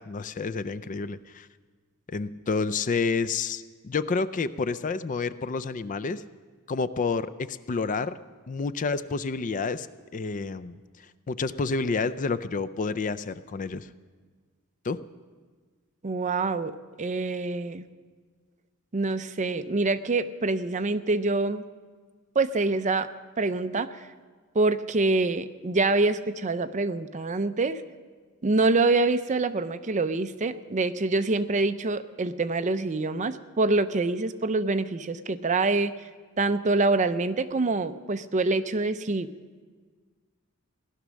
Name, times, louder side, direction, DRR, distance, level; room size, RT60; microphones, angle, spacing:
voice 1, 0.0-1.5 2.1-6.2 6.7-8.1 8.5-9.9 10.1-10.8 11.3-13.9 14.8-15.0, left 4 dB, 35° left, 14 dB, 0.4 m, -29 dB
voice 2, 16.0-16.7 17.0-17.9 18.9-21.6 22.3-23.1 23.4-23.9 24.5-27.8 28.4-35.9 36.4-39.3, right 3 dB, 35° right, 11 dB, 0.6 m, -25 dB
17.5 x 11.5 x 6.3 m, 1.5 s
head